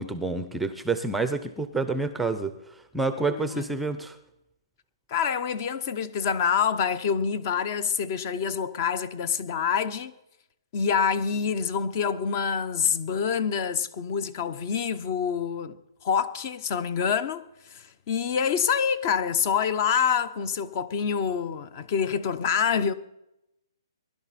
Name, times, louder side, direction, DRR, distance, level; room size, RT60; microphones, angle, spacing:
voice 1, 0.0-4.2, right 3 dB, 5° right, 0.6 m, -28 dB
voice 2, 3.3-3.6 5.1-10.1 10.7-15.8 16.0-17.4 17.7-22.9, left 7 dB, 35° left, 0.9 m, -26 dB
21.0 x 11.5 x 4.3 m
hypercardioid pair, 150°, 3 cm